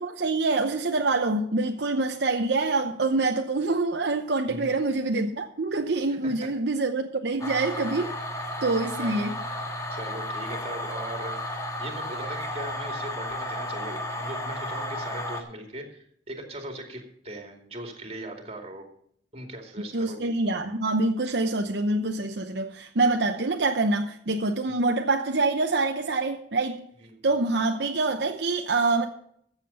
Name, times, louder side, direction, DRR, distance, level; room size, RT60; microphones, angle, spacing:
voice 1, 0.0-8.1 8.6-9.3 19.9-26.9 27.2-29.1, right 3 dB, 65° right, 0.8 m, -25 dB
sound 1, 7.4-15.4, left 1 dB, 20° left, 1.7 m, -33 dB
voice 2, 9.9-18.9 19.3-20.3 27.0-27.2, right 1 dB, 35° right, 2.4 m, -39 dB
14.0 x 7.4 x 5.5 m
head